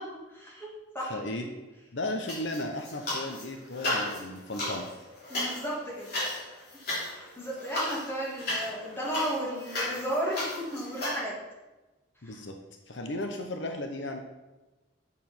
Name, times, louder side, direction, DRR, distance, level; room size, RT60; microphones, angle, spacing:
voice 1, 0.3-0.7 0.9-1.2 1.4-1.5 5.3-6.1 6.9-11.3 12.2-12.4, equal, 10° left, -5 dB, 2.5 m, -34 dB
voice 2, 1.1-1.5 1.9-4.9 12.2-12.6 12.9-14.2, left 1 dB, 70° left, 5 dB, 0.8 m, -35 dB
sound 1, 2.3-3.4 3.7-11.2, left 1 dB, 50° left, 3.5 m, -34 dB
8.4 x 6.8 x 5.5 m, 1.1 s
head